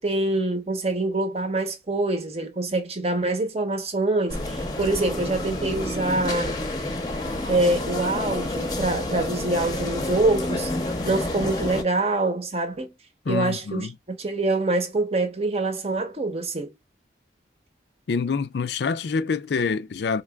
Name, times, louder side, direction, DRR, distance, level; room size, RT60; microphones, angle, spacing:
voice 1, 0.0-6.6 7.5-10.7 11.0-12.9 13.3-13.9 14.2-16.7, right 2 dB, 35° right, 0.8 m, -25 dB
sound 1, 4.3-11.8, left 1 dB, 20° left, 0.7 m, -29 dB
voice 2, 13.3-13.9 18.1-20.2, left 5 dB, 70° left, 0.4 m, -26 dB
4.5 x 2.8 x 2.2 m
head